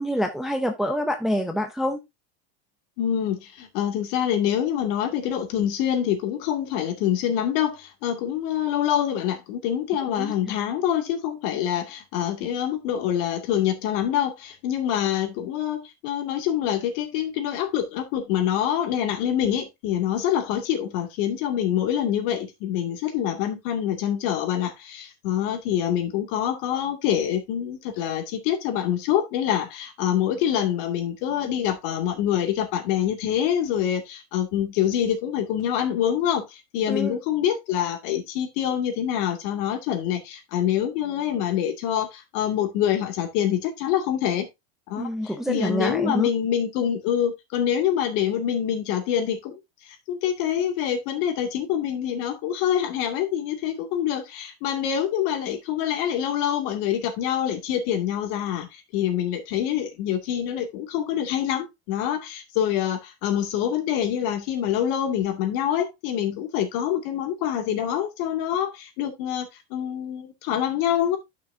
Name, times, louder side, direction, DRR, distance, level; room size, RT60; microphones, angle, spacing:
voice 1, 0.0-2.0 10.2-10.3 36.9-37.2 45.0-46.3, equal, ahead, 0.6 m, -26 dB
voice 2, 3.0-44.5 44.9-49.6 50.1-69.5 69.7-71.2, left 10 dB, 55° left, 2.4 m, -25 dB
10.5 x 6.3 x 2.7 m
supercardioid pair, 160°, 31 cm